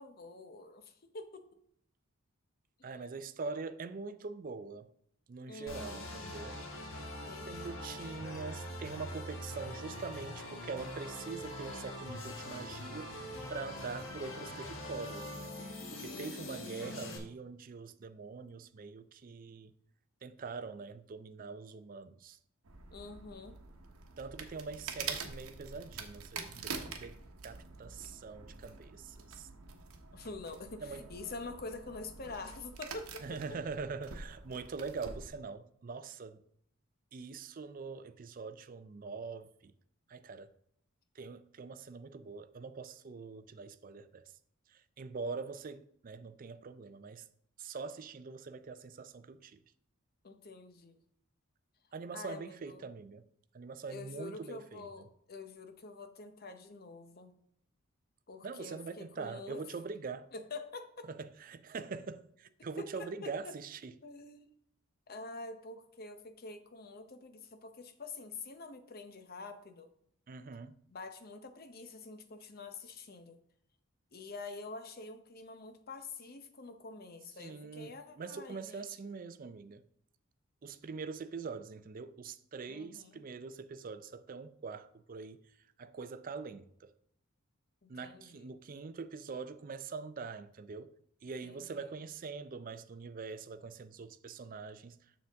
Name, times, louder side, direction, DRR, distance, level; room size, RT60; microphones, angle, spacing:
voice 1, 0.0-1.5 2.8-3.0 5.5-6.1 7.3-7.7 16.0-16.7 22.9-23.6 30.1-33.6 50.2-51.0 52.1-52.9 53.9-57.3 58.3-59.6 60.3-61.1 62.8-63.6 64.0-64.5 65.1-69.9 70.9-73.4 74.1-78.9 82.7-83.2 87.8-88.5 91.4-91.9, left 3 dB, 45° left, 0.7 m, -47 dB
voice 2, 2.8-4.9 5.3-6.6 7.5-13.2 13.5-15.5 15.9-19.7 20.2-22.4 24.2-27.2 27.4-29.5 30.8-31.0 33.2-36.4 37.1-39.7 40.1-40.5 41.2-44.3 44.7-47.3 47.6-49.6 51.9-53.2 53.5-55.1 58.4-60.3 61.1-63.9 70.3-70.8 77.4-79.8 80.6-85.4 85.8-86.9 87.9-90.9 91.2-95.0, right 4 dB, 40° right, 0.4 m, -43 dB
sound 1, 5.7-17.2, left 1 dB, 65° left, 1.4 m, -43 dB
sound 2, 22.6-35.3, right 5 dB, 90° right, 1.0 m, -46 dB
7.0 x 6.4 x 3.4 m
head